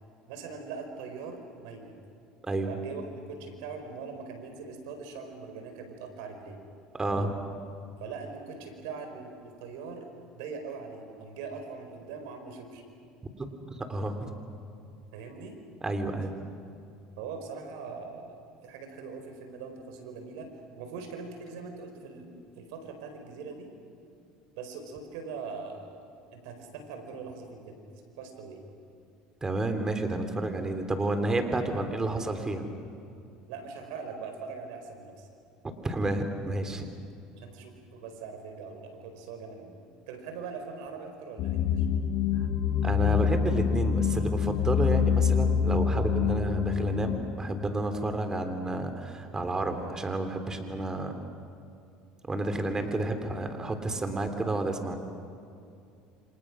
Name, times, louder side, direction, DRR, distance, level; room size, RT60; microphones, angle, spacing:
voice 1, 0.3-1.9 2.7-6.6 8.0-10.1 10.3-12.8 15.1-15.5 17.2-18.4 18.6-20.5 20.8-23.7 24.5-26.0 26.3-27.8 28.0-28.7 33.5-35.3 37.4-39.8 40.1-41.9, right 5 dB, 80° right, 5 dB, 5.0 m, -41 dB
voice 2, 7.0-7.4 13.4-14.3 15.8-16.3 29.4-32.7 35.6-36.8 42.8-51.1 52.3-55.0, right 2 dB, 20° right, 7 dB, 3.3 m, -30 dB
sound 1, 41.4-47.2, left 7 dB, 60° left, 1.7 m, -26 dB
28.5 x 26.5 x 6.3 m, 2.6 s
supercardioid pair, 100°, 3 cm